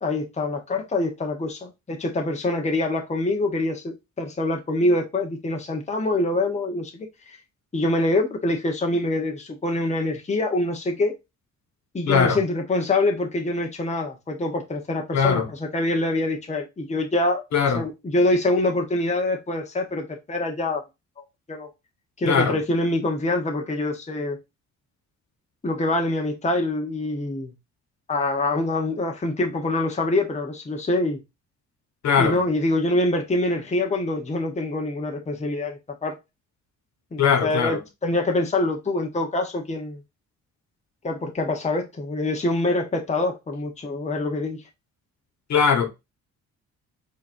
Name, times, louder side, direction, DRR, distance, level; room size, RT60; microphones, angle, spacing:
voice 1, 0.0-7.4 7.7-11.1 11.9-17.4 17.7-20.8 21.2-21.7 22.2-24.4 25.6-27.5 28.1-31.2 32.2-36.1 37.1-40.0 41.0-44.6, left 2 dB, 20° left, 1.0 m, -25 dB
voice 2, 12.1-12.4 15.1-15.5 17.5-17.8 22.2-22.6 32.0-32.3 37.2-37.8 45.5-45.9, left 6 dB, 65° left, 1.4 m, -20 dB
4.8 x 3.0 x 2.6 m
cardioid pair, 90°, 30 cm